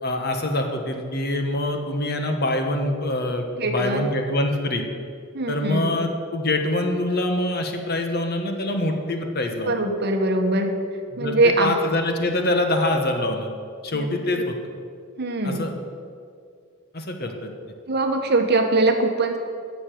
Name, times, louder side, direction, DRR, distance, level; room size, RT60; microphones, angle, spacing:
voice 1, 0.0-4.8 5.5-9.8 11.1-13.5 13.8-14.6 15.4-15.7 16.9-17.5, left 1 dB, 45° left, 4 dB, 1.4 m, -25 dB
voice 2, 3.6-4.1 5.3-6.0 9.7-10.7 11.2-11.7 13.9-14.1 15.2-15.7 17.9-19.4, right 2 dB, 50° right, 5 dB, 1.3 m, -22 dB
11.5 x 7.1 x 9.4 m, 2.2 s
head